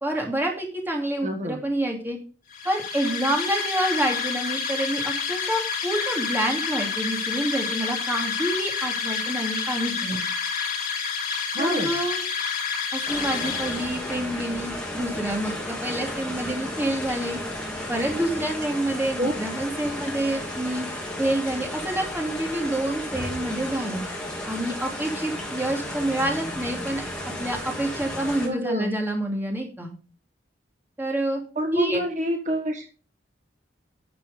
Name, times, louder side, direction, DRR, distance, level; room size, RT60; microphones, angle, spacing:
voice 1, 0.0-2.2 2.6-10.2 11.6-12.2 12.9-17.4 17.9-20.9 21.2-24.0 24.4-27.0 27.4-29.9 31.0-31.4 31.7-32.0, right 1 dB, 10° right, 0 dB, 2.8 m, -27 dB
voice 2, 1.2-1.6 11.5-11.9 19.2-19.3 28.4-29.0 31.6-32.8, equal, 40° right, 4 dB, 1.5 m, -27 dB
sound 1, 2.5-14.3, left 6 dB, 50° left, 2.2 m, -29 dB
sound 2, 13.1-28.5, left 1 dB, 5° left, 2.8 m, -33 dB
12.5 x 6.9 x 5.2 m, 0.38 s
head